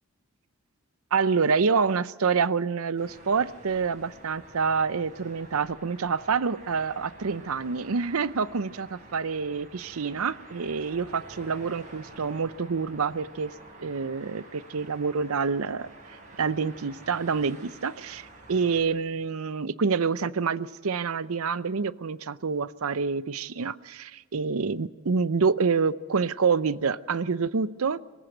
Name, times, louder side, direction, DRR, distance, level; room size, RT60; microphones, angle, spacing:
voice 1, 1.1-13.5 13.8-15.9 16.4-28.0, right 5 dB, 75° right, 16 dB, 0.6 m, -27 dB
sound 1, 3.0-18.8, right 2 dB, 35° right, 7.6 m, -49 dB
23.5 x 15.0 x 7.9 m, 1.5 s
head